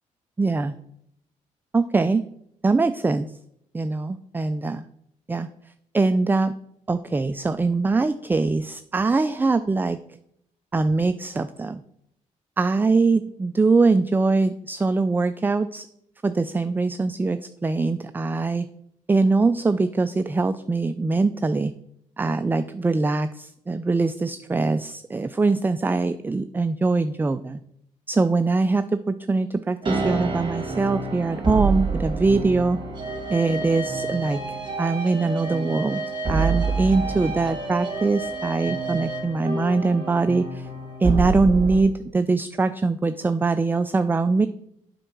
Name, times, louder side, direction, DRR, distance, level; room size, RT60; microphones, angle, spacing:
voice 1, 0.4-0.8 1.7-2.2 2.6-3.3 3.7-4.9 5.3-5.5 5.9-6.5 6.9-10.0 10.7-11.8 12.6-15.9 16.2-18.7 19.1-21.7 22.2-27.6 28.1-32.8 33.3-34.4 34.8-36.0 36.3-40.7 41.0-44.5, right 3 dB, 15° right, 12 dB, 0.3 m, -22 dB
sound 1, 29.8-41.8, right 3 dB, 35° right, 2.5 m, -28 dB
7.7 x 4.5 x 6.3 m, 0.74 s
cardioid pair, 85°, 14 cm